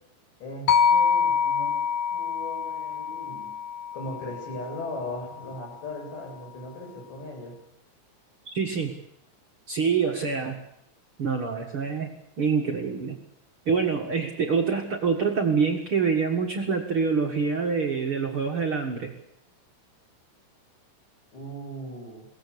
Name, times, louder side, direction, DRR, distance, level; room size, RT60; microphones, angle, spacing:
voice 1, 0.4-1.8 2.1-3.5 3.9-7.6 21.3-22.3, left 1 dB, 85° left, 0 dB, 10.0 m, -38 dB
sound 1, 0.7-4.9, left 6 dB, 65° left, 2.8 m, -25 dB
voice 2, 8.5-9.0 9.7-10.6 11.2-13.2 13.7-19.1, right 5 dB, 45° right, 2 dB, 1.9 m, -26 dB
22.5 x 18.5 x 8.7 m, 0.77 s
omnidirectional pair, 4.9 m